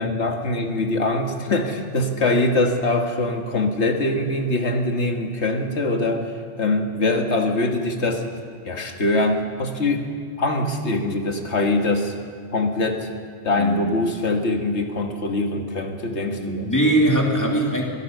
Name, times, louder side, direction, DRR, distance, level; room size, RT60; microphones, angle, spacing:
voice 1, 0.0-8.3 8.7-10.0 10.4-12.1 12.5-13.1 13.4-16.7, left 2 dB, 90° left, 3 dB, 1.9 m, -23 dB
voice 2, 13.6-13.9 16.4-17.8, right 1 dB, 15° left, -1 dB, 2.8 m, -21 dB
24.0 x 17.5 x 6.7 m, 2.3 s
omnidirectional pair, 1.1 m